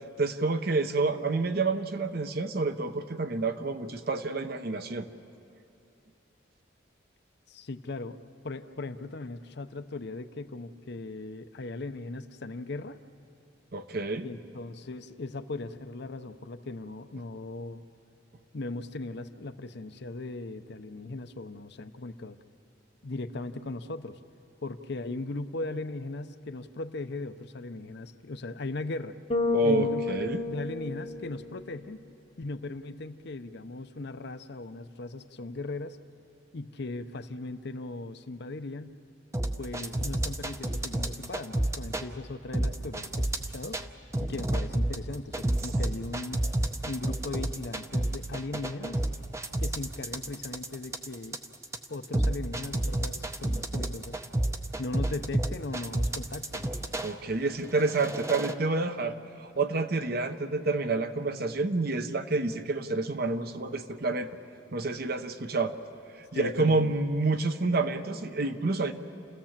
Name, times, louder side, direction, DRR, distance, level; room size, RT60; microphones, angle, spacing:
voice 1, 0.2-5.1 13.7-14.3 29.5-30.4 57.0-64.3 64.7-65.8 66.3-68.9, right 3 dB, 50° right, 9 dB, 0.8 m, -28 dB
voice 2, 7.5-8.2 8.4-13.0 14.2-17.8 18.5-22.4 23.0-24.2 24.6-29.2 29.6-30.2 30.5-32.0 32.4-36.0 36.5-39.0 39.6-43.8 44.2-46.4 46.8-49.0 49.6-51.4 51.9-54.2 54.8-56.7 66.3-66.9, left 2 dB, 60° left, 10 dB, 0.7 m, -38 dB
Bass guitar, 29.3-31.6, left 2 dB, 30° left, 0.9 m, -30 dB
sound 1, 39.3-42.1 42.5-43.8 44.1-57.1 57.7-58.5, right 1 dB, 15° right, 0.7 m, -30 dB
29.0 x 16.0 x 7.4 m, 2.9 s
head